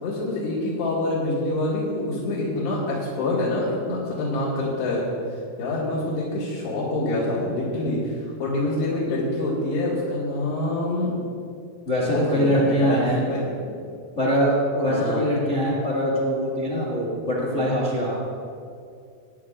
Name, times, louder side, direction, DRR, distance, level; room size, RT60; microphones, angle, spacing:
voice 1, 0.0-5.0 5.6-11.2 12.0-13.7 14.8-15.2 17.4-17.6, left 2 dB, 70° left, -8 dB, 3.9 m, -26 dB
voice 2, 11.8-13.3 14.2-18.2, equal, 85° left, -5 dB, 0.6 m, -23 dB
21.0 x 10.0 x 2.5 m, 2.3 s
omnidirectional pair, 5.1 m